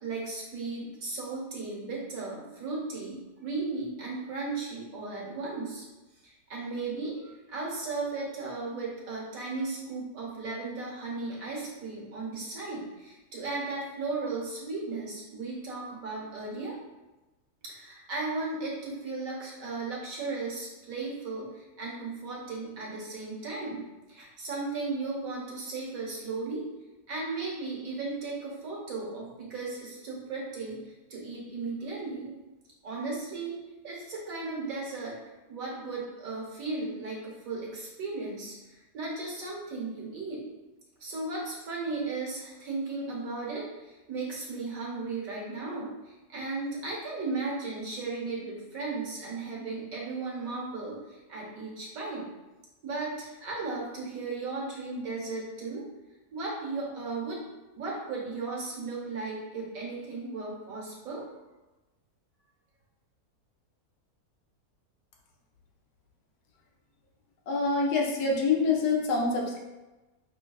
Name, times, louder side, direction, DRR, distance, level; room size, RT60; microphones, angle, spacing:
voice 1, 0.0-5.8 6.2-16.8 17.6-23.8 24.1-26.6 27.1-30.8 31.1-32.3 32.8-35.2 35.5-40.4 41.0-52.3 52.8-55.8 56.3-57.5 57.8-61.3, right 3 dB, 65° right, -4 dB, 1.4 m, -36 dB
voice 2, 67.5-69.6, left 4 dB, 85° left, -1 dB, 1.2 m, -26 dB
5.9 x 2.2 x 2.3 m, 1.1 s
omnidirectional pair, 1.6 m